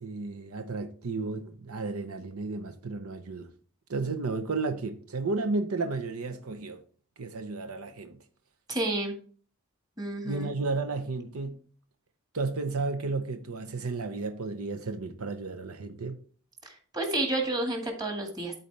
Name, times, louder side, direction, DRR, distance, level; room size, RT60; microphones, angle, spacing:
voice 1, 0.0-3.5 3.9-6.8 7.2-8.2 10.2-11.6 12.3-16.2, right 3 dB, 85° right, 0.8 m, -33 dB
voice 2, 8.7-9.1 10.0-10.5 16.6-18.5, right 2 dB, 20° right, 1.7 m, -30 dB
12.5 x 4.2 x 3.3 m
head